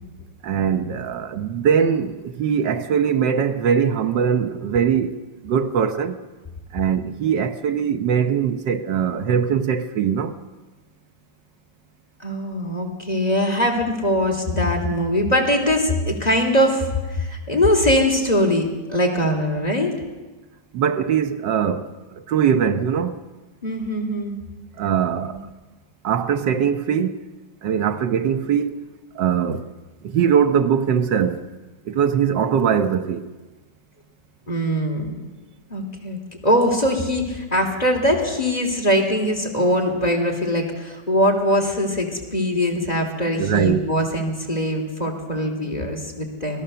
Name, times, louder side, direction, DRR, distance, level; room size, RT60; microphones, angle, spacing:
voice 1, 0.4-6.2 6.7-10.4 20.7-23.2 24.8-25.4 26.0-27.2 27.6-28.9 29.1-29.6 30.0-31.5 31.8-33.3 43.4-43.8, right 7 dB, 80° right, 1.7 m, -21 dB
voice 2, 12.2-19.9 23.6-24.4 25.3-25.4 34.5-35.2 35.7-46.6, equal, 20° left, 3.2 m, -22 dB
25.5 x 18.0 x 6.9 m
omnidirectional pair, 1.9 m